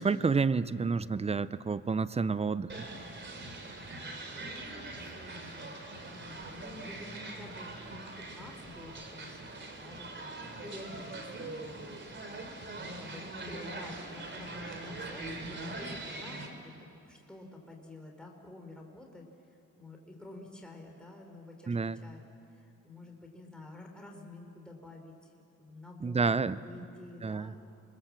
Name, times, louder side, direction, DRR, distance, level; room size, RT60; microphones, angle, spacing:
voice 1, 0.0-2.7 21.7-22.0 26.0-26.6 27.2-27.5, right 4 dB, 20° right, 16 dB, 0.6 m, -29 dB
sound 1, 2.7-16.5, right 2 dB, 40° right, 3.2 m, -42 dB
voice 2, 4.3-12.4 12.7-19.3 19.8-21.7 22.0-25.3 25.6-27.6, left 2 dB, 5° left, 1 dB, 3.8 m, -50 dB
27.0 x 21.0 x 7.4 m, 2.6 s
cardioid pair, 90°, 30 cm